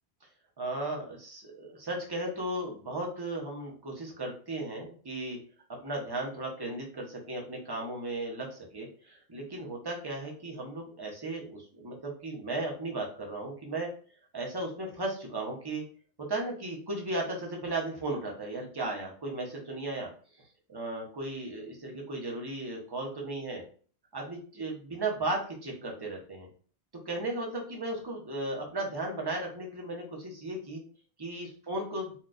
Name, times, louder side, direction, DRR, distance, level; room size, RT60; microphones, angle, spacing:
voice 1, 0.6-5.4 5.7-13.9 14.3-15.8 16.2-20.1 20.4-23.6 24.1-26.5 27.1-30.8 31.2-32.1, right 2 dB, 25° right, 0 dB, 0.7 m, -36 dB
4.2 x 2.3 x 2.4 m, 0.42 s
omnidirectional pair, 1.1 m